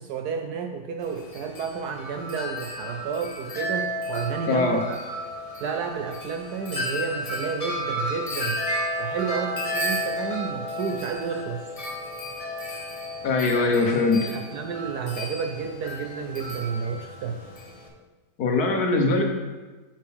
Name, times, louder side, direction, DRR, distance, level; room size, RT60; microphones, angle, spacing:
voice 1, 0.0-5.0 5.6-8.6 9.0-11.6 13.7-13.8 14.2-17.4, right 6 dB, 70° right, 5 dB, 1.0 m, -31 dB
Wind chime, 1.0-17.9, equal, 30° left, 0.7 m, -33 dB
voice 2, 4.5-4.8 13.2-14.3 18.4-19.2, left 3 dB, 60° left, 2 dB, 1.3 m, -22 dB
9.1 x 6.2 x 3.5 m, 1.2 s
omnidirectional pair, 2.1 m